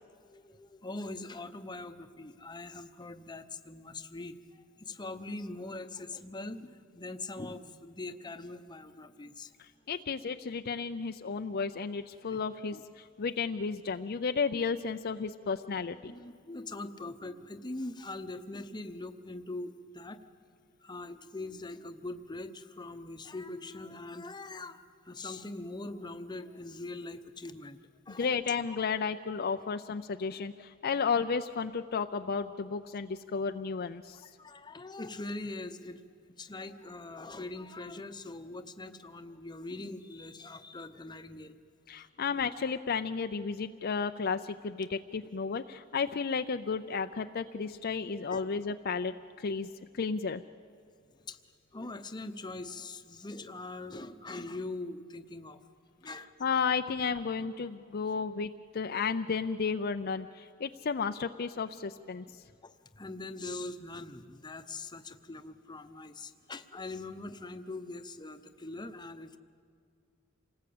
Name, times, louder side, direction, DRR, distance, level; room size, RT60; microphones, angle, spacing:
voice 1, 0.2-9.5 12.3-12.4 12.7-12.8 15.5-15.6 16.0-20.2 20.8-27.8 28.1-28.4 34.4-36.0 36.4-41.5 48.3-48.5 51.3-51.4 51.7-55.6 56.0-56.3 62.3-62.4 62.6-69.4, left 2 dB, 20° left, 9 dB, 0.9 m, -42 dB
voice 2, 9.6-16.1 28.1-34.2 41.9-49.7 49.9-50.4 56.4-62.2, left 5 dB, 45° left, 8 dB, 0.5 m, -33 dB
27.5 x 19.0 x 8.6 m, 2.3 s
head